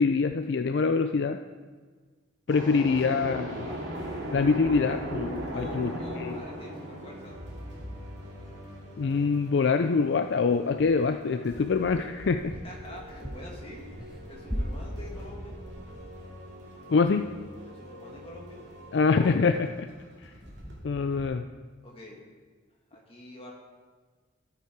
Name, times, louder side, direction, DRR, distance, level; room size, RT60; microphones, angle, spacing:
voice 1, 0.0-1.4 2.5-3.7 4.3-5.9 6.2-6.4 9.0-12.5 16.9-17.2 18.9-19.9 20.2-20.3 20.8-21.4, left 4 dB, 60° left, 8 dB, 0.4 m, -25 dB
sound 1, 2.5-8.2, right 1 dB, 80° right, 2.4 m, -36 dB
voice 2, 2.7-3.9 5.5-7.4 12.6-13.9 14.3-15.6 17.7-18.6 21.8-22.3 22.9-23.5, left 1 dB, 30° left, -1 dB, 2.0 m, -46 dB
sound 2, 3.5-20.8, equal, 60° right, 2.6 m, -46 dB
sound 3, 10.8-11.2 11.9-16.5 16.9-17.1 17.4-17.5 17.9-18.0 18.3-18.4 18.7-19.8 20.4-21.3, equal, 5° right, 1.1 m, -40 dB
12.5 x 8.2 x 4.6 m, 1.5 s
head